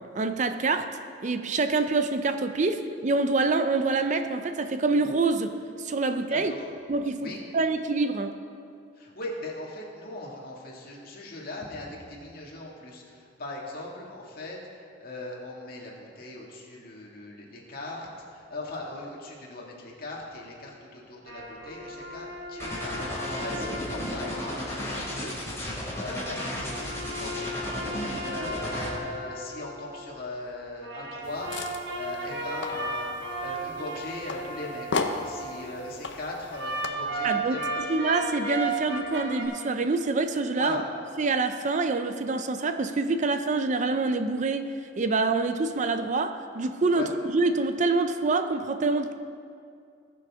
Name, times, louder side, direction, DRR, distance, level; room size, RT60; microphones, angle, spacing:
voice 1, 0.0-6.5 6.9-8.3 37.2-40.8 41.2-49.1, right 3 dB, 40° right, 8 dB, 0.5 m, -26 dB
voice 2, 6.3-6.7 7.2-7.4 9.0-25.4 26.0-27.5 28.2-31.5 31.9-38.0 40.5-40.8 46.9-47.1, left 2 dB, 50° left, -2 dB, 2.1 m, -39 dB
sound 1, 21.3-25.3 25.9-30.3 30.8-35.9 36.5-39.5, right 2 dB, 65° right, 1.5 m, -35 dB
sound 2, 22.6-28.9, left 1 dB, 15° left, 2.9 m, -34 dB
sound 3, 31.2-36.9, left 3 dB, 70° left, 0.7 m, -36 dB
20.0 x 7.0 x 3.6 m, 2.3 s
head